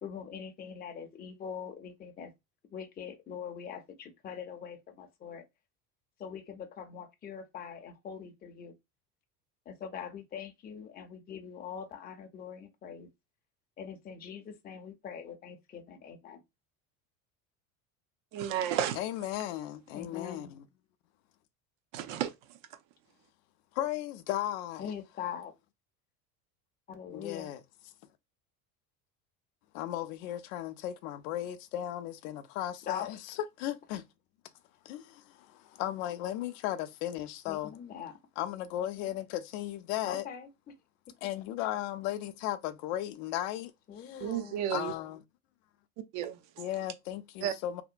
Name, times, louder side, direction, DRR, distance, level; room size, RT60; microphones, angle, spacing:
voice 1, 0.0-2.3 2.7-5.4 6.2-8.7 9.7-13.1 13.8-16.4 19.9-20.5 24.8-25.5 26.9-27.5 32.8-33.2 33.9-34.0 37.5-38.1 40.0-40.5 43.9-44.6, left 8 dB, 20° left, 0.5 m, -42 dB
voice 2, 18.3-19.0 21.9-22.3 44.2-44.9 46.1-46.7 47.4-47.5, right 10 dB, 65° right, 0.6 m, -32 dB
voice 3, 19.0-20.6 23.7-24.8 27.1-27.6 29.7-33.2 33.6-34.0 34.8-37.7 38.4-40.3 41.2-43.7 44.0-44.2 44.7-45.2 46.6-47.8, left 13 dB, 65° left, 0.6 m, -36 dB
2.8 x 2.1 x 2.5 m
hypercardioid pair, 80°, 43 cm